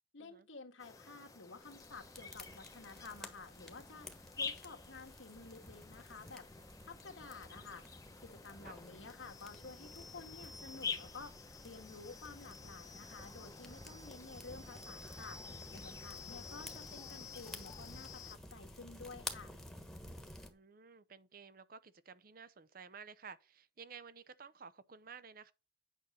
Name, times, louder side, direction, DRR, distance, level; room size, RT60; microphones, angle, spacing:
voice 1, 0.1-6.5 6.9-7.8 8.2-19.5, left 4 dB, 85° left, 1.6 m, -52 dB
sound 1, 0.8-18.4, left 5 dB, 15° left, 0.8 m, -49 dB
sound 2, 1.6-20.5, left 1 dB, ahead, 1.3 m, -52 dB
voice 2, 20.5-25.5, right 6 dB, 50° right, 0.6 m, -54 dB
9.1 x 6.2 x 4.2 m
head